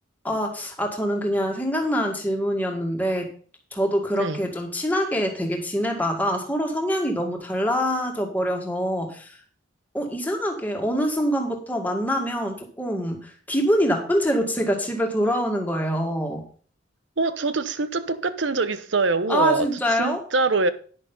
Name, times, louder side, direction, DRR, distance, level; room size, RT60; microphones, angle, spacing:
voice 1, 0.2-3.3 3.7-9.4 9.9-16.4 19.3-20.2, equal, 10° left, 2.0 m, -25 dB
voice 2, 4.1-4.5 17.2-20.7, right 3 dB, 75° right, 0.9 m, -24 dB
10.5 x 6.6 x 5.5 m
head